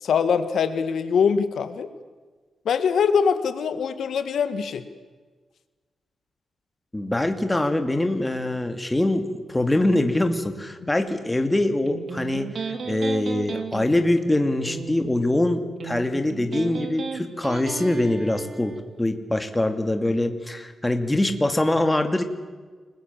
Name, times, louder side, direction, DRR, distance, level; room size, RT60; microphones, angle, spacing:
voice 1, 0.0-1.9 2.7-4.8, left 6 dB, 80° left, 10 dB, 1.8 m, -23 dB
voice 2, 6.9-12.5 12.9-22.2, left 1 dB, 10° left, 7 dB, 2.5 m, -23 dB
Electric guitar, 11.9-18.8, right 5 dB, 55° right, 3.2 m, -35 dB
29.0 x 21.0 x 7.5 m, 1.4 s
cardioid pair, 110°, 0 cm